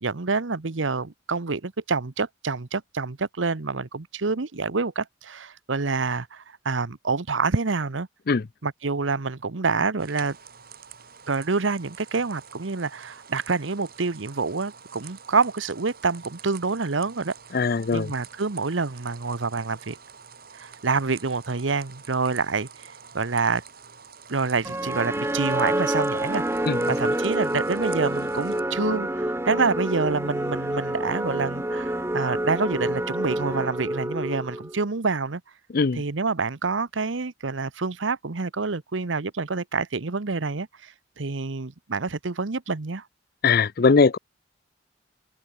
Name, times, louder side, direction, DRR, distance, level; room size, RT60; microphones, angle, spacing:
voice 1, 0.0-8.1 8.6-10.4 11.3-17.3 17.9-20.0 20.5-22.9 23.1-23.6 24.3-35.4 35.9-43.0, right 4 dB, 85° right, 1.0 m, -27 dB
sound 1, 10.0-28.6, right 7 dB, 55° right, 3.4 m, -47 dB
voice 2, 17.5-18.1 26.7-26.9 35.7-36.0 43.4-44.2, left 4 dB, 55° left, 0.6 m, -20 dB
sound 2, 24.6-34.8, right 1 dB, 15° right, 1.8 m, -27 dB
open air
head